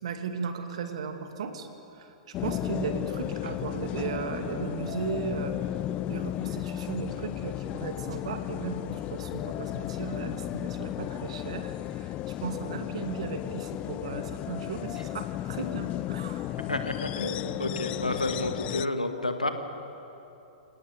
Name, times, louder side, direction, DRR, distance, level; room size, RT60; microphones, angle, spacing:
voice 1, 0.0-5.6 6.1-16.5, right 6 dB, 55° right, 6 dB, 2.3 m, -36 dB
sound 1, 2.3-18.9, left 14 dB, 30° left, 0.5 m, -34 dB
voice 2, 16.7-19.5, left 2 dB, 85° left, 6 dB, 2.0 m, -30 dB
27.0 x 19.0 x 7.2 m, 2.9 s
figure-of-eight pair, 105°, 4 cm